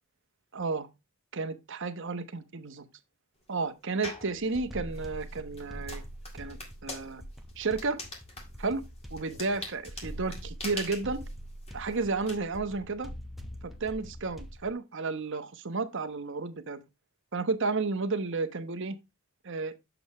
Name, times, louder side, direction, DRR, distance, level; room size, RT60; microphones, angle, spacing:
voice 1, 0.5-0.9 1.3-2.8 3.5-6.0 6.3-7.2 7.6-8.0 8.6-8.8 9.1-11.2 11.7-13.1 13.6-16.8 17.3-19.0 19.4-19.7, right 3 dB, 55° right, 1.0 m, -32 dB
sound 1, 4.0-4.3 4.9-12.3, left 2 dB, 30° left, 2.0 m, -43 dB
sound 2, 4.0-14.7, equal, ahead, 1.0 m, -44 dB
7.9 x 6.9 x 3.1 m
head